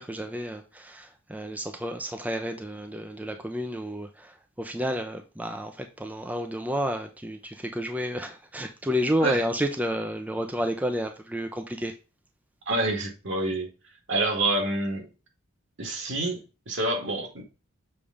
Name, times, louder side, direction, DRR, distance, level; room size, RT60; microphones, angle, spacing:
voice 1, 0.0-11.9, equal, 5° right, 0.6 m, -31 dB
voice 2, 12.7-13.7 14.1-15.1 15.8-17.4, right 2 dB, 60° right, 2.3 m, -27 dB
7.1 x 3.3 x 5.0 m
head